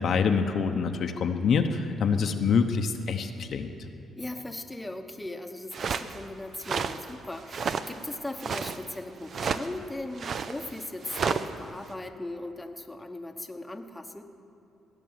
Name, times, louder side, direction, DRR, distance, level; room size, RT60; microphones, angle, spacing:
voice 1, 0.0-3.7, left 5 dB, 60° left, 5 dB, 0.8 m, -26 dB
voice 2, 4.2-14.2, left 1 dB, 10° left, 4 dB, 1.0 m, -38 dB
sound 1, 5.7-6.2 6.6-7.0 7.4-8.0 8.2-8.8 9.3-9.7 10.2-11.5, right 6 dB, 55° right, 0.6 m, -31 dB
17.5 x 6.8 x 9.5 m, 2.8 s
cardioid pair, 90°, 0 cm